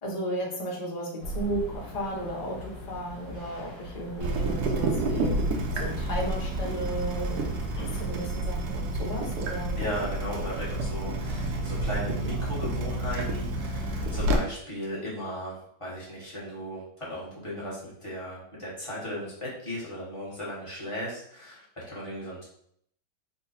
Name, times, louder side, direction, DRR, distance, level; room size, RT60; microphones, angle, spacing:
voice 1, 0.0-5.4 5.7-7.5 7.8-9.8, right 1 dB, 70° left, -3 dB, 0.3 m, -34 dB
sound 1, 1.2-8.1, right 1 dB, 50° left, 1.2 m, -39 dB
Water tap faucet / Drip, 4.2-14.4, right 1 dB, 70° right, 1.0 m, -29 dB
voice 2, 9.8-22.4, equal, 20° left, -7 dB, 0.9 m, -36 dB
3.7 x 2.1 x 4.0 m, 0.67 s
omnidirectional pair, 2.1 m